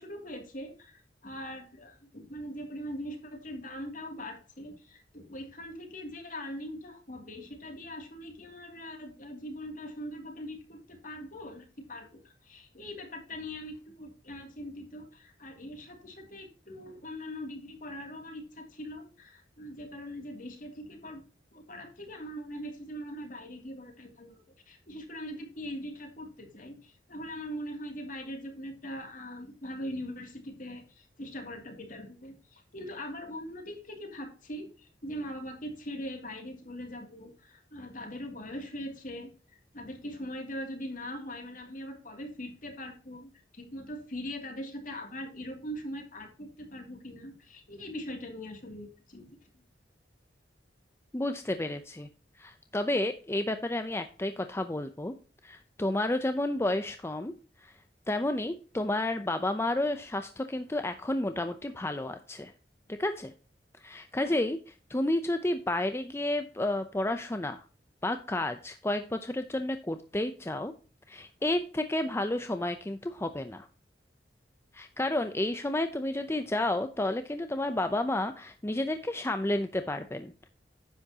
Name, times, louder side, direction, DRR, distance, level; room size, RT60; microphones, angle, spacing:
voice 1, 0.0-21.2 21.5-49.3 64.2-64.4, equal, 50° left, 4 dB, 2.7 m, -41 dB
voice 2, 51.1-52.1 52.4-55.1 55.4-57.3 57.6-57.7 58.1-62.5 63.0-63.3 63.8-64.6 64.9-67.6 68.0-70.7 71.1-73.7 74.7-80.5, left 1 dB, 15° left, 8 dB, 0.6 m, -31 dB
10.0 x 8.4 x 2.9 m, 0.37 s
head